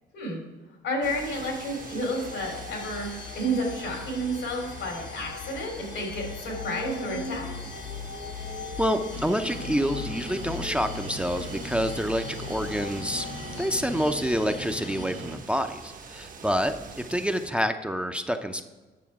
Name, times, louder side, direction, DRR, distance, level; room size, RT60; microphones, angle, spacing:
voice 1, 0.8-7.5, equal, 85° left, 1 dB, 3.1 m, -31 dB
sound 1, 1.0-17.5, right 4 dB, 45° right, 0.8 m, -43 dB
sound 2, 1.4-15.1, left 8 dB, 65° left, 0.5 m, -40 dB
voice 2, 8.8-13.3 13.6-18.6, equal, 5° right, 7 dB, 0.5 m, -27 dB
sound 3, 9.1-15.4, right 3 dB, 70° right, 1.5 m, -40 dB
9.3 x 6.7 x 4.7 m, 1.3 s
cardioid pair, 90°, 20 cm